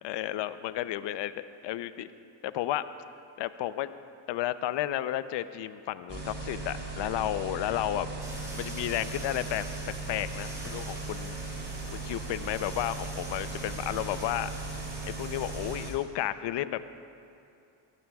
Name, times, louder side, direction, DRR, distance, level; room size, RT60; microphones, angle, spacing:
voice 1, 0.0-2.1 2.4-2.8 3.4-3.9 4.3-8.1 8.5-9.7 10.1-11.4 11.9-14.5 15.1-16.8, left 13 dB, 60° left, 13 dB, 0.7 m, -32 dB
sound 1, 6.1-15.9, right 3 dB, 20° right, 3.3 m, -38 dB
sound 2, 8.2-15.9, right 1 dB, 5° right, 3.7 m, -46 dB
22.0 x 16.5 x 2.4 m, 2.7 s
cardioid pair, 90°, 48 cm